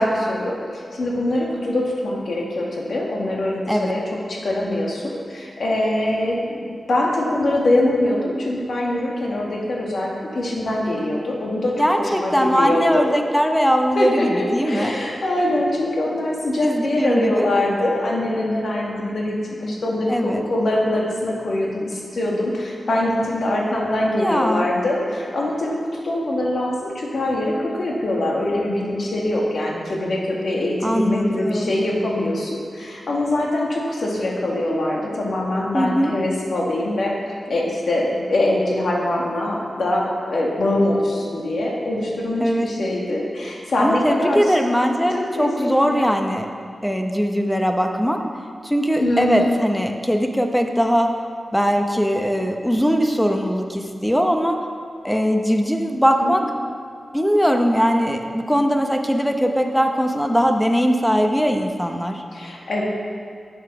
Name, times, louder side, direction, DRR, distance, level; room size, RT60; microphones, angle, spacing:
voice 1, 0.0-13.1 14.0-37.1 37.5-44.5 45.1-46.1 49.0-49.5 56.2-56.5 62.3-62.9, left 1 dB, 65° left, -2 dB, 1.9 m, -23 dB
voice 2, 11.8-14.9 16.6-17.5 20.1-20.4 24.2-24.7 30.8-31.7 35.7-36.1 42.4-42.7 43.8-46.5 46.8-48.2 48.6-51.1 51.5-54.6 55.0-56.4 57.1-62.2, equal, 5° left, 4 dB, 0.8 m, -20 dB
8.3 x 8.0 x 6.1 m, 2.2 s
wide cardioid pair, 130°, 0 cm